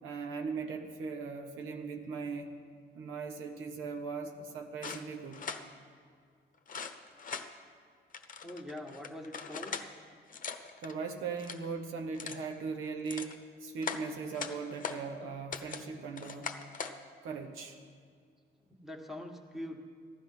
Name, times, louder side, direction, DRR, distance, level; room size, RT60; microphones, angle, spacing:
voice 1, 0.0-2.5 2.9-5.4 10.8-16.5 17.2-17.8, right 5 dB, 90° right, 4 dB, 1.2 m, -39 dB
sound 1, 4.8-5.6 6.7-7.5 8.1-9.9 10.3-10.9 11.3-11.7 12.1-12.5 12.9-13.4 13.8-15.0 15.5-15.9 16.2-17.0, left 5 dB, 40° left, 1.0 m, -40 dB
voice 2, 8.4-9.8 18.7-19.8, left 1 dB, ahead, 3 dB, 1.7 m, -43 dB
15.0 x 10.5 x 5.7 m, 2.1 s
cardioid pair, 70°, 20 cm